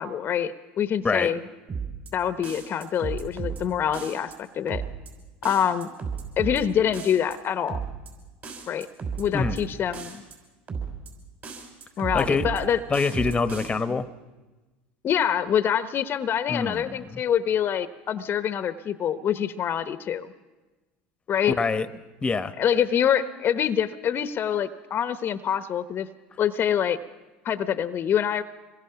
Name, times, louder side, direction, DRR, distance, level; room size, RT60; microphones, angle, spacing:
voice 1, 0.0-1.4 2.1-4.8 5.4-5.9 6.4-7.8 8.7-8.9 9.2-10.2 12.0-12.8 13.9-14.0 15.0-20.3 21.3-21.6 22.6-26.1 26.4-27.0 27.4-28.4, left 9 dB, 40° left, 11 dB, 0.9 m, -25 dB
sound 1, 1.7-2.1 2.4-3.6 3.9-4.4 4.7-5.1 5.4-6.6 6.9-7.4 7.7-8.1 8.4-9.6 9.9-10.4 10.7-11.1 11.4-12.6 12.9-13.7, right 6 dB, 40° right, 6.0 m, -34 dB
voice 2, 12.1-12.6 12.9-14.1 16.5-17.2 21.5-21.9 22.2-22.5, left 4 dB, 20° left, 12 dB, 1.1 m, -25 dB
26.0 x 22.0 x 5.8 m, 1.2 s
supercardioid pair, 95°, 5 cm